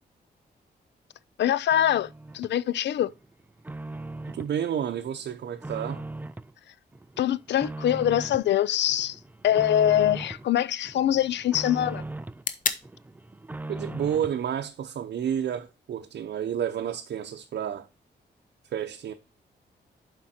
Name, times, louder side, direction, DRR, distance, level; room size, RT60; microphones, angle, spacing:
voice 1, 1.4-3.1 7.2-12.0, left 11 dB, 85° left, 0.5 m, -24 dB
sound 1, 1.7-2.6 3.0-4.6 4.9-6.5 6.9-8.5 8.9-10.5 10.8-12.4 12.8-14.4, right 2 dB, 10° right, 0.3 m, -39 dB
voice 2, 4.3-6.0 13.7-17.9 18.7-19.1, right 9 dB, 75° right, 0.7 m, -30 dB
sound 2, 8.3-16.3, left 5 dB, 50° left, 0.9 m, -40 dB
7.5 x 5.1 x 4.2 m
cardioid pair, 95°, 18 cm